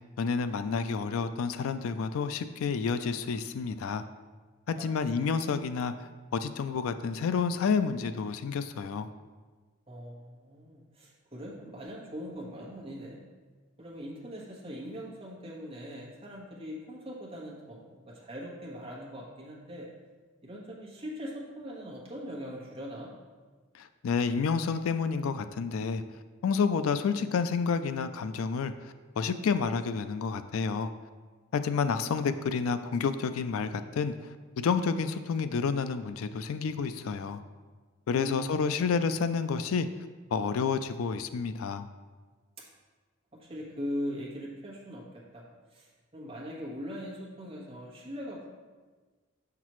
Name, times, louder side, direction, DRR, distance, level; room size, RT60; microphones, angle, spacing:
voice 1, 0.0-4.0 4.7-5.9 6.3-9.1 23.8-26.0 26.4-28.7 29.2-30.9 31.5-34.1 34.6-37.4 38.1-39.9 40.3-41.9, left 5 dB, 80° left, 11 dB, 0.4 m, -29 dB
voice 2, 9.9-13.2 13.8-19.9 20.4-23.1 31.8-31.9 38.1-38.9 43.3-45.4 45.7-48.5, equal, 25° right, -4 dB, 1.3 m, -41 dB
7.2 x 5.9 x 3.1 m, 1.4 s
head